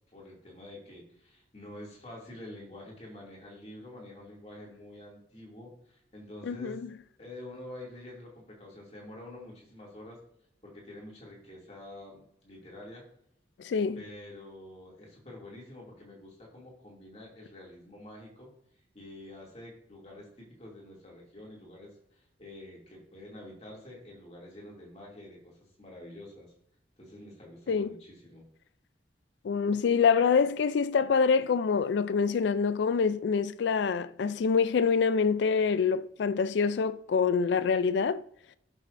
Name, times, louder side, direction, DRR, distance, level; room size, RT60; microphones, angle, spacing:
voice 1, 0.1-6.9 7.2-10.2 10.6-13.0 13.9-18.5 18.9-26.5 27.0-28.4, left 1 dB, 35° left, 2.5 m, -47 dB
voice 2, 6.5-6.9 13.6-14.0 27.7-28.0 29.4-38.2, left 5 dB, 70° left, 0.3 m, -26 dB
12.0 x 6.1 x 2.6 m
head